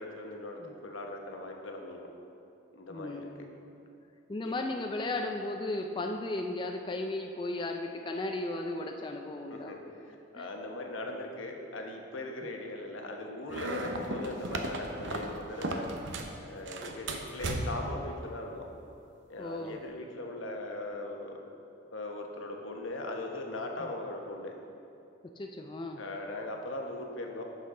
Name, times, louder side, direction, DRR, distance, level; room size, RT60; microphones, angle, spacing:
voice 1, 0.0-2.1 2.7-3.3 4.4-4.5 9.5-15.9 16.4-18.7 19.3-21.4 21.9-24.5 26.0-27.4, left 2 dB, 85° left, 2 dB, 1.0 m, -39 dB
voice 2, 2.9-3.5 4.3-9.7 10.4-10.5 12.4-12.5 14.0-14.1 19.4-19.8 23.8-23.9 25.4-26.0, left 2 dB, 25° left, 3 dB, 0.3 m, -35 dB
sound 1, 13.5-16.4 16.7-18.0, right 2 dB, 70° right, 0.7 m, -35 dB
11.0 x 6.4 x 3.7 m, 2.7 s
head